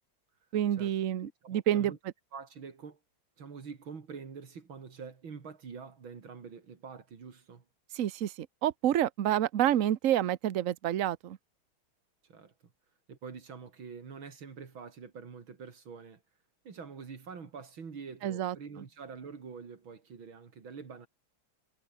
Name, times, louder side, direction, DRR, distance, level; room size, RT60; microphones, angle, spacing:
voice 1, 0.5-1.9 7.9-11.4 18.2-18.6, right 11 dB, 50° right, 1.1 m, -28 dB
voice 2, 1.2-2.0 2.3-3.0 3.4-7.6 12.3-12.5 13.1-16.2 16.7-21.1, right 5 dB, 85° right, 3.5 m, -46 dB
omnidirectional pair, 2.2 m